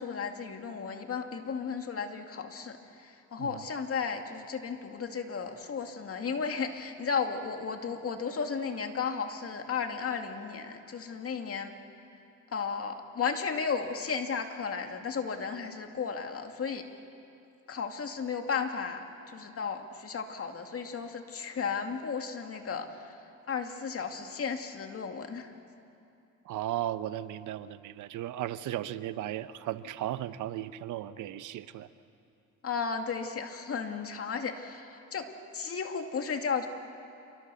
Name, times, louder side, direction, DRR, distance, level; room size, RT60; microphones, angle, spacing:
voice 1, 0.0-11.7 12.5-16.9 17.7-23.2 23.5-25.5 32.6-35.3 35.5-36.7, left 6 dB, 50° left, 5 dB, 2.3 m, -34 dB
voice 2, 26.4-31.9, right 12 dB, 80° right, 13 dB, 0.9 m, -36 dB
28.0 x 24.0 x 7.0 m, 2.6 s
cardioid pair, 90°, 30 cm